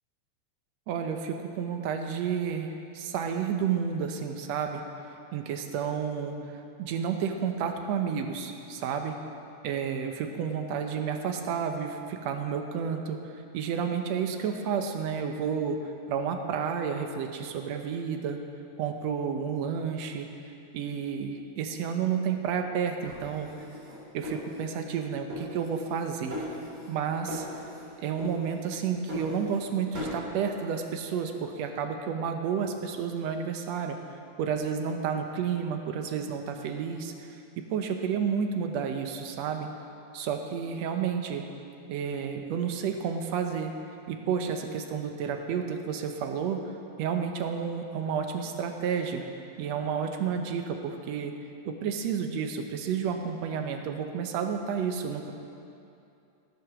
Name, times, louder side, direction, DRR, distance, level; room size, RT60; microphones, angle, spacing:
voice 1, 0.9-4.8 5.3-9.1 9.6-18.4 18.8-20.3 20.7-23.6 24.1-26.5 26.9-27.5 28.0-34.0 34.4-37.4 37.7-39.7 40.1-41.4 41.9-43.7 44.1-46.6 47.0-49.3 49.6-51.3 51.7-55.3, right 7 dB, 70° right, 5 dB, 1.9 m, -31 dB
sound 1, 23.1-25.0 25.3-26.0 26.3-27.0 27.3-27.9 28.2-29.7 29.9-30.2, left 1 dB, 35° right, 4.2 m, -39 dB
18.0 x 7.6 x 6.0 m, 2.7 s
omnidirectional pair, 3.5 m